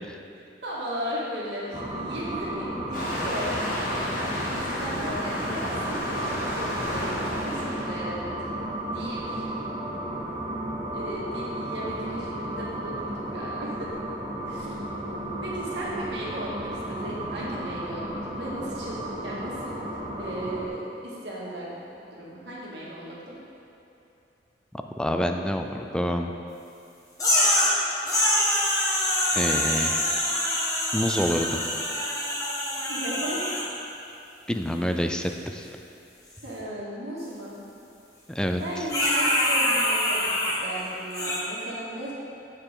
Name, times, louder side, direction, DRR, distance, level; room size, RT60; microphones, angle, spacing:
voice 1, 0.6-3.8 4.2-8.2 8.9-9.5 10.8-13.9 14.5-14.8 15.4-23.4 32.9-33.4 36.4-37.6 38.6-40.4 40.6-42.1, right 1 dB, 80° right, -6 dB, 2.0 m, -36 dB
sound 1, 1.7-20.7, right 1 dB, 25° right, 1.0 m, -33 dB
Waves surf, 2.9-8.0, left 1 dB, 50° left, 2.0 m, -31 dB
voice 2, 25.0-26.3 29.3-30.0 30.9-31.6 34.5-35.7 38.3-38.6, equal, 5° left, 5 dB, 0.4 m, -27 dB
sound 2, 27.2-27.7 28.1-33.6 38.9-40.6 41.1-41.4, left 1 dB, 20° left, 1.5 m, -24 dB
11.5 x 6.7 x 3.8 m, 2.7 s
head